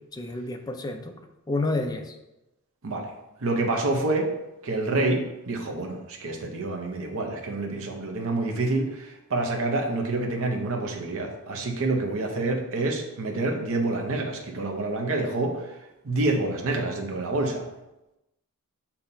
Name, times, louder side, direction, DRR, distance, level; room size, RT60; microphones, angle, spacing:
voice 1, 0.1-1.1 1.5-2.1, left 2 dB, 15° left, 5 dB, 0.3 m, -29 dB
voice 2, 3.4-4.3 4.6-15.7 16.0-17.6, right 2 dB, 65° right, 2 dB, 0.7 m, -27 dB
6.9 x 2.9 x 2.6 m, 0.95 s
head